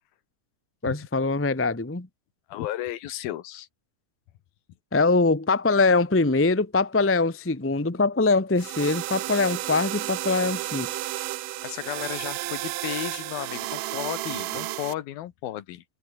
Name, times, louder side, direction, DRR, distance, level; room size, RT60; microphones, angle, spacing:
voice 1, 0.8-2.1 4.9-10.9, left 3 dB, 10° left, 0.5 m, -23 dB
voice 2, 2.5-3.7 11.6-15.8, left 13 dB, 90° left, 3.2 m, -34 dB
sound 1, 8.6-14.9, right 17 dB, 75° right, 2.3 m, -32 dB
omnidirectional pair, 4.1 m